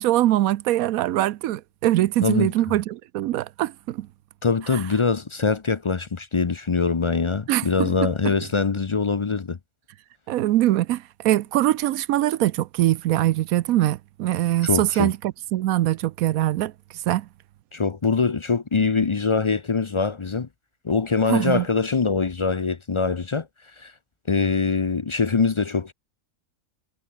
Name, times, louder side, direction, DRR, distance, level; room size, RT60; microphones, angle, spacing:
voice 1, 0.0-4.1 4.7-4.8 7.5-8.3 10.3-16.7 17.1-17.3 21.3-21.7, right 14 dB, 80° right, 1.0 m, -23 dB
voice 2, 2.2-2.5 4.4-9.6 14.6-15.1 17.7-20.5 20.8-23.5 23.8-23.9 24.3-25.9, left 4 dB, 45° left, 0.4 m, -23 dB
omnidirectional pair, 1.5 m